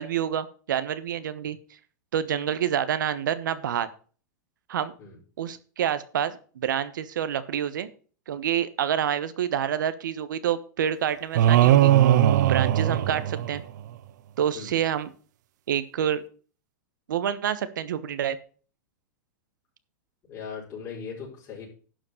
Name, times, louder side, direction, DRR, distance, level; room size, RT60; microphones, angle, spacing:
voice 1, 0.0-1.6 2.1-3.9 4.7-4.9 5.4-7.9 8.3-11.9 12.4-13.6 14.4-15.1 15.7-16.2 17.1-18.4, right 9 dB, 85° right, 13 dB, 1.1 m, -27 dB
sound 1, 11.4-13.9, right 12 dB, 65° right, 0.6 m, -19 dB
voice 2, 12.9-13.2 14.5-14.7 20.3-21.7, left 6 dB, 25° left, -6 dB, 4.8 m, -39 dB
11.5 x 5.1 x 6.7 m, 0.40 s
supercardioid pair, 150°, 10 cm